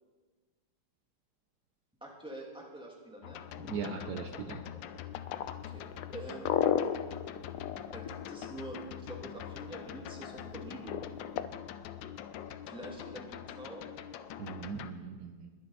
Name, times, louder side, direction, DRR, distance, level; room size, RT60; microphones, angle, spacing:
voice 1, 2.0-3.8 5.5-5.8 6.1-6.5 7.9-11.0 12.7-13.9, right 1 dB, 5° right, -2 dB, 2.2 m, -45 dB
sound 1, 3.2-14.9, left 10 dB, 90° left, 1.3 m, -44 dB
voice 2, 3.7-4.6 14.4-15.5, right 5 dB, 65° right, 5 dB, 1.3 m, -39 dB
sound 2, 5.2-8.8 10.9-11.5, left 9 dB, 70° left, 0.8 m, -31 dB
21.0 x 8.7 x 4.2 m, 1.4 s
omnidirectional pair, 2.0 m